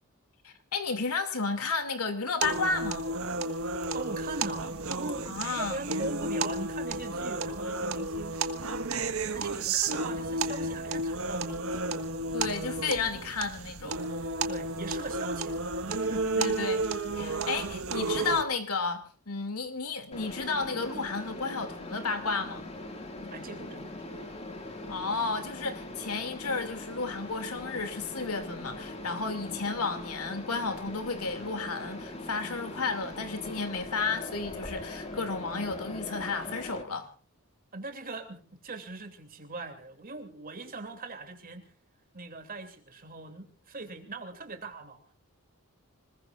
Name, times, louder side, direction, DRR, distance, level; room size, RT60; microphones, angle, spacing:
voice 1, 0.4-3.1 5.3-5.8 12.3-14.0 16.4-16.8 17.1-22.6 24.9-37.1, left 4 dB, 85° left, 2.7 m, -32 dB
sound 1, 2.4-18.4, right 3 dB, 70° right, 1.5 m, -32 dB
voice 2, 3.9-8.4 8.9-12.0 14.5-16.6 23.3-24.3 37.7-41.7 42.1-45.1, right 2 dB, 40° right, 2.9 m, -41 dB
Mechanisms, 20.1-36.8, left 2 dB, 30° left, 2.4 m, -41 dB
26.0 x 21.0 x 2.6 m
head